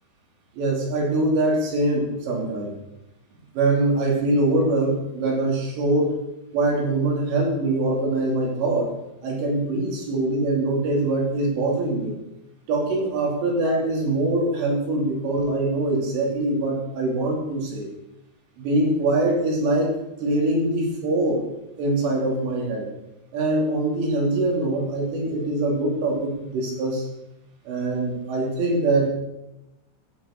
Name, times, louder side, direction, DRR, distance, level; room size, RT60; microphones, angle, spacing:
voice 1, 0.6-2.7 3.5-6.2 6.5-8.9 9.2-12.1 12.7-17.9 18.6-21.4 21.8-22.9 23.3-27.1 27.7-29.1, right 2 dB, 75° right, -1 dB, 5.0 m, -23 dB
13.5 x 9.6 x 4.4 m, 0.88 s
omnidirectional pair, 5.2 m